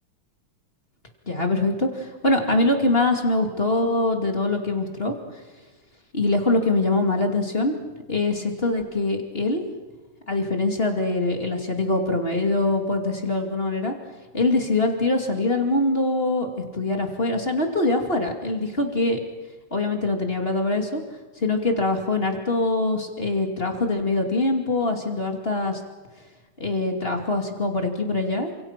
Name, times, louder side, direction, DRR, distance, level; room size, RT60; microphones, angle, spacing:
voice 1, 1.3-5.2 6.1-7.8 8.1-9.6 10.3-13.9 14.3-16.5 16.7-19.2 19.7-21.0 21.4-25.8 26.6-28.5, left 2 dB, 25° left, 3 dB, 2.8 m, -23 dB
29.5 x 26.5 x 6.0 m, 1.3 s
omnidirectional pair, 2.3 m